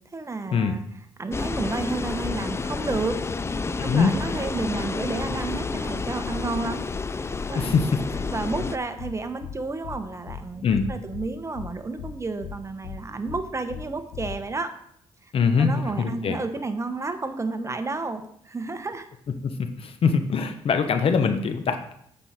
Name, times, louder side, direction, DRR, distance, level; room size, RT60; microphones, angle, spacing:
voice 1, 0.1-0.8 1.2-3.2 3.8-6.9 7.5-7.8 8.3-10.6 10.9-14.7 15.2-15.3 15.6-19.1, right 3 dB, 25° right, 8 dB, 1.1 m, -31 dB
sound 1, 1.3-8.8, left 4 dB, 25° left, 0.4 m, -30 dB
voice 2, 3.8-4.2 7.5-8.0 10.6-10.9 15.3-16.4 19.4-21.9, left 5 dB, 60° left, 8 dB, 1.1 m, -23 dB
sound 2, 7.7-7.8 8.1-8.3 8.5-8.7 9.0-9.1 9.4-9.5 9.8-10.0 10.3-10.4 10.7-11.3 11.5-11.7 12.0-12.1 12.4-12.5 12.8-13.0 13.3-13.4 13.7-13.8 14.1-14.3, left 9 dB, 80° left, 1.1 m, -36 dB
8.2 x 5.6 x 4.3 m, 0.68 s
supercardioid pair, 65°, 11 cm